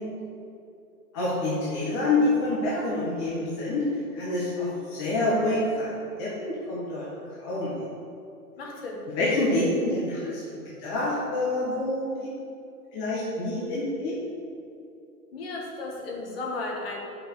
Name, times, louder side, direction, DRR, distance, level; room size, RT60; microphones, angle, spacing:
voice 1, 1.1-3.8 4.1-7.1 7.4-7.7 9.2-10.4 10.8-12.0 12.9-14.2, left 2 dB, 20° left, -7 dB, 0.8 m, -27 dB
voice 2, 8.6-9.0 15.3-17.0, left 2 dB, 40° left, -1 dB, 1.5 m, -34 dB
5.9 x 5.2 x 6.5 m, 2.6 s
hypercardioid pair, 155°, 46 cm